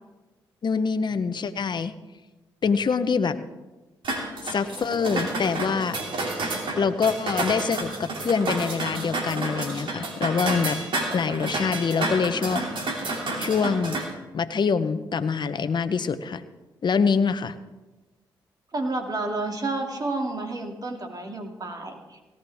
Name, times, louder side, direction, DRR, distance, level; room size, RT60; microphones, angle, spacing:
voice 1, 0.6-1.9 2.6-3.4 4.4-6.0 6.8-10.8 11.1-12.6 13.4-14.0 14.3-16.4 16.8-17.5, left 5 dB, 55° left, 11 dB, 0.9 m, -25 dB
sound 1, 4.0-14.0, right 2 dB, 65° right, 2.8 m, -30 dB
voice 2, 18.7-22.2, right 2 dB, 45° right, 2 dB, 2.6 m, -30 dB
18.0 x 14.0 x 3.6 m, 1.1 s
supercardioid pair, 50°, 9 cm